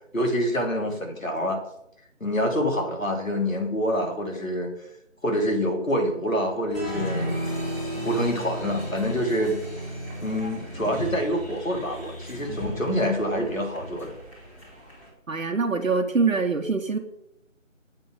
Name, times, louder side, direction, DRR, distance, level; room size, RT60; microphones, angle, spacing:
voice 1, 0.1-1.6 2.2-4.7 5.2-7.3 8.0-9.6 10.2-14.2, equal, 85° left, 1 dB, 2.4 m, -26 dB
Applause, 6.7-15.1, equal, 10° left, 1.6 m, -34 dB
voice 2, 15.3-17.0, right 4 dB, 80° right, 4 dB, 0.9 m, -24 dB
7.6 x 3.8 x 6.5 m, 0.81 s
figure-of-eight pair, 160°, 39 cm